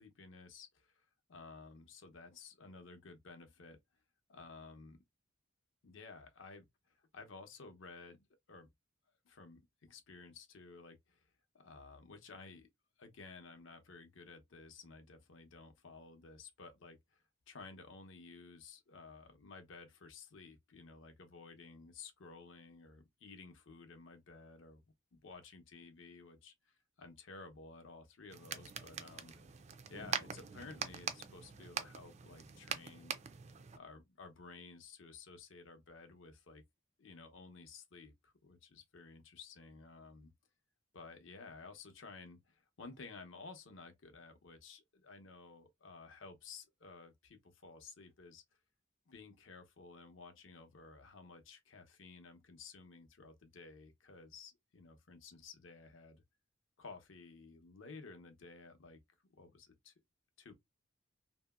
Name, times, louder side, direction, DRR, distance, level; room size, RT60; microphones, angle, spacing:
voice 1, 0.0-3.8 4.3-5.0 5.8-8.2 8.5-8.7 9.2-11.3 11.5-12.7 13.0-17.2 17.5-24.8 25.2-29.4 29.9-33.1 33.7-36.6 37.0-40.3 40.9-48.4 49.1-56.2 56.8-59.0 59.4-59.9 60.4-60.5, left 4 dB, 75° left, 0.7 m, -54 dB
sound 1, 28.3-33.8, right 7 dB, 35° right, 0.4 m, -43 dB
2.8 x 2.7 x 2.3 m
head